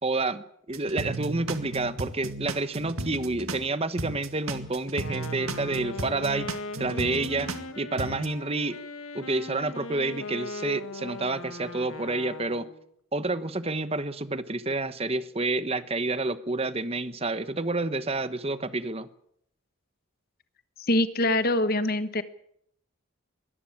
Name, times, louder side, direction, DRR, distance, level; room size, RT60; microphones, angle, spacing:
voice 1, 0.0-6.5 6.8-7.5 7.8-8.8 9.1-12.7 13.1-19.1, right 2 dB, 25° right, 13 dB, 1.1 m, -29 dB
sound 1, 0.7-3.7 4.0-7.7 8.0-8.3, right 2 dB, 75° right, 2.1 m, -34 dB
Wind instrument woodwind instrument, 4.9-12.9, left 2 dB, 80° left, 1.8 m, -39 dB
voice 2, 20.9-22.2, left 1 dB, 45° left, 12 dB, 1.3 m, -24 dB
22.5 x 13.5 x 8.8 m, 0.73 s
head